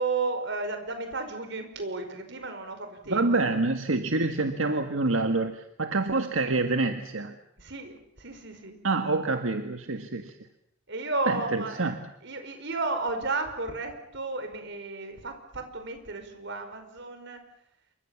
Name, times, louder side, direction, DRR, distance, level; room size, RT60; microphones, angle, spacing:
voice 1, 0.0-3.2 4.6-4.8 7.6-8.8 10.9-11.9 12.2-17.4, right 3 dB, 65° right, 7 dB, 5.2 m, -33 dB
voice 2, 3.1-7.3 8.8-10.3 11.3-12.0, right 3 dB, 85° right, 7 dB, 1.7 m, -27 dB
28.5 x 24.5 x 7.2 m, 0.75 s
head